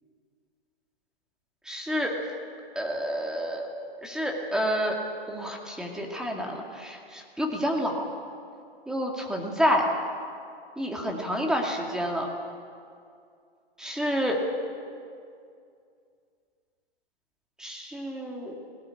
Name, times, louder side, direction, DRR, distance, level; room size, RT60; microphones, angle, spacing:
voice 1, 1.7-2.1 2.8-3.7 4.0-5.0 5.3-8.0 8.9-9.9 10.8-12.3 13.8-14.4 17.6-18.5, equal, ahead, 0 dB, 2.3 m, -29 dB
18.5 x 17.5 x 8.6 m, 2.4 s
hypercardioid pair, 135°, 31 cm